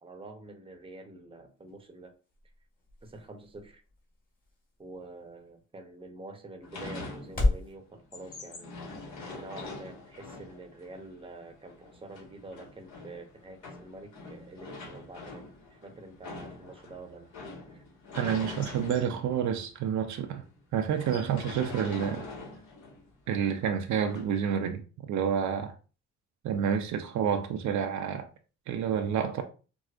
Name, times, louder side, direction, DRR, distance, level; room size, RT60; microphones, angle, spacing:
voice 1, 0.0-2.2 3.0-3.8 4.8-8.9 9.3-15.4 15.7-17.3 17.7-17.8, right 2 dB, 20° right, 0.7 m, -47 dB
sound 1, 1.5-7.7, left 2 dB, 30° left, 1.5 m, -36 dB
sound 2, 6.6-7.7 8.0-19.7 20.1-20.2 20.4-20.6 20.9-23.1 24.1-24.3, left 3 dB, 70° left, 1.2 m, -44 dB
voice 2, 18.1-20.4 20.7-22.2 23.3-25.7 26.4-28.3 28.7-29.4, right 8 dB, 70° right, 0.5 m, -29 dB
4.6 x 2.0 x 2.4 m
cardioid pair, 90°, 30 cm